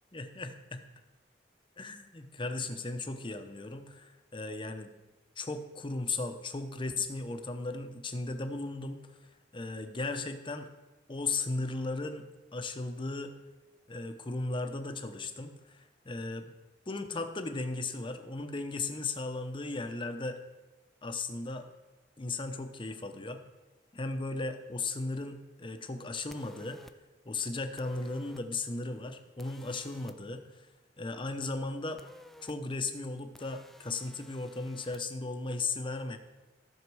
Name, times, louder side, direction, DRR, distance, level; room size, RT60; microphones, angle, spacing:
voice 1, 0.1-0.8 1.8-4.9 5.4-9.2 9.5-10.7 11.1-13.3 13.9-16.5 16.9-20.4 21.0-21.7 22.2-23.4 23.9-26.8 27.3-30.7 31.0-32.0 32.4-36.2, left 3 dB, 30° left, 7 dB, 0.8 m, -36 dB
sound 1, 26.3-26.9 27.8-28.4 29.4-30.2 32.0-32.5 33.3-35.0, left 1 dB, ahead, 0.4 m, -54 dB
13.5 x 6.5 x 4.7 m, 1.1 s
head